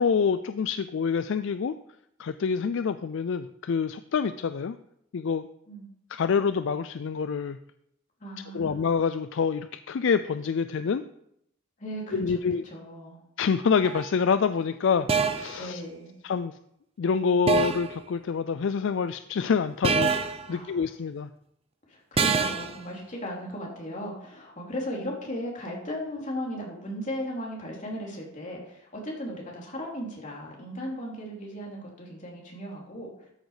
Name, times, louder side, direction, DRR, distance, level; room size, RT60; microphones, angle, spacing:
voice 1, 0.0-1.7 2.2-4.8 5.1-5.5 6.1-7.6 8.5-11.0 12.1-12.6 13.4-15.8 16.2-16.6 17.0-21.3, left 6 dB, 65° left, 12 dB, 0.4 m, -26 dB
voice 2, 8.2-8.8 11.8-13.2 15.6-16.1 20.5-20.8 21.9-33.1, equal, 40° left, -2 dB, 3.0 m, -36 dB
sound 1, 13.8-14.1 15.1-15.6 17.5-18.0 19.8-20.5 22.2-22.8, right 5 dB, 30° right, 0.6 m, -25 dB
13.0 x 6.4 x 4.9 m, 0.76 s
head